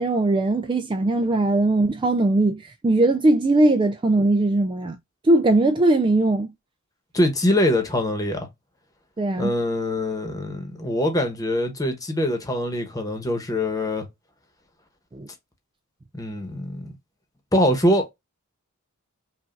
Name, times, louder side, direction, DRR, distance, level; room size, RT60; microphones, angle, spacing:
voice 1, 0.0-5.0 5.2-6.5 9.2-9.5 15.1-15.3, right 2 dB, 20° right, 0.3 m, -20 dB
voice 2, 7.1-8.5 9.4-14.1 16.1-16.9 17.5-18.1, left 1 dB, 15° left, 1.1 m, -23 dB
5.5 x 2.5 x 2.5 m
head